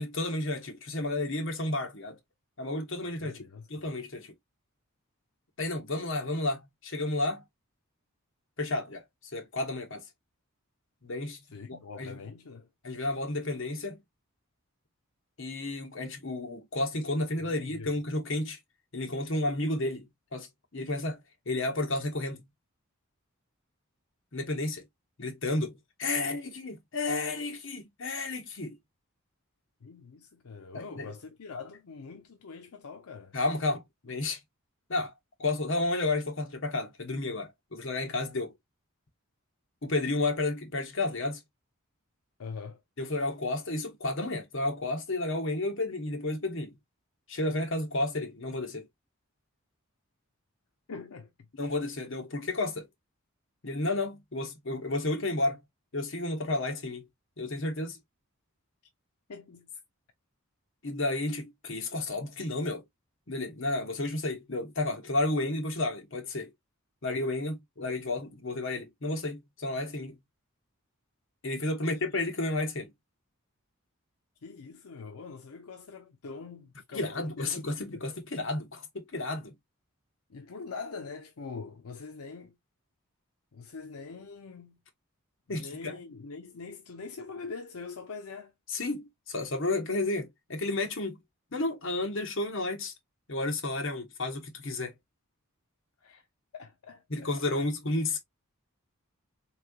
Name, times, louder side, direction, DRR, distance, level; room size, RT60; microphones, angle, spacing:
voice 1, 0.0-2.2 2.6-4.3 5.6-7.4 8.6-10.0 11.0-12.2 12.8-14.0 15.4-18.6 18.9-22.5 24.3-24.8 25.2-28.8 30.7-31.1 33.3-34.4 34.9-35.1 35.4-38.5 39.8-41.4 43.0-46.8 47.3-48.9 51.6-52.9 53.6-55.6 55.9-57.0 57.4-58.0 60.8-62.8 63.3-66.5 67.0-70.2 71.4-72.9 76.9-79.5 85.5-86.0 88.7-91.2 91.5-92.9 93.3-95.0 97.1-98.2, left 2 dB, 60° left, 1.1 m, -32 dB
voice 2, 3.2-3.7 11.5-12.7 17.4-17.9 29.8-33.4 42.4-42.8 50.9-51.5 59.3-59.8 71.8-72.1 74.4-78.0 80.3-82.6 83.5-84.8 85.5-88.5 96.0-96.2 96.5-97.7, left 4 dB, 85° left, 0.6 m, -44 dB
3.6 x 3.2 x 2.3 m
head